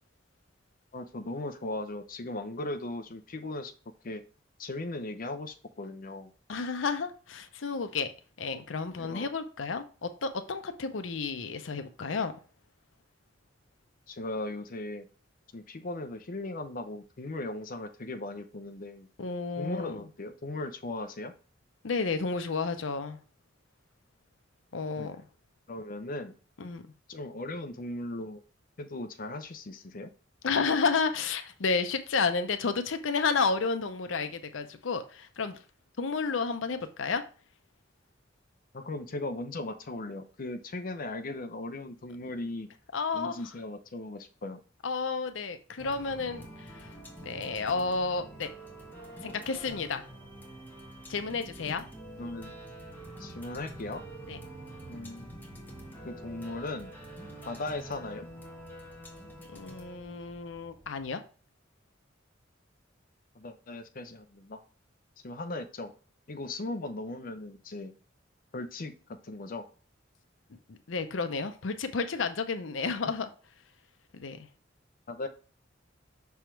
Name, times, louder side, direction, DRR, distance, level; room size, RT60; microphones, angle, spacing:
voice 1, 0.9-3.7 4.0-4.2 4.6-6.3 9.0-9.3 14.1-15.1 15.5-19.1 19.6-21.3 25.0-25.1 25.7-26.3 27.1-28.4 28.8-30.1 38.7-42.7 43.1-44.6 51.7-51.8 52.2-52.6 53.2-54.0 54.9-55.3 56.0-56.9 57.4-58.3 63.4-64.6 65.2-65.9 66.3-67.9 68.5-68.9 69.2-69.6 75.1-75.3, left 2 dB, 50° left, 0.6 m, -38 dB
voice 2, 6.5-8.1 8.4-12.3 19.2-20.0 21.8-23.2 24.7-25.2 26.6-26.8 30.4-35.6 36.0-37.2 42.9-43.3 44.8-46.9 47.2-48.5 49.2-50.0 51.1-51.8 54.3-54.4 59.5-61.2 70.7-73.3 74.1-74.5, left 4 dB, 85° left, 0.6 m, -31 dB
sound 1, 45.8-61.1, right 1 dB, 10° left, 1.4 m, -46 dB
6.1 x 3.5 x 4.4 m
head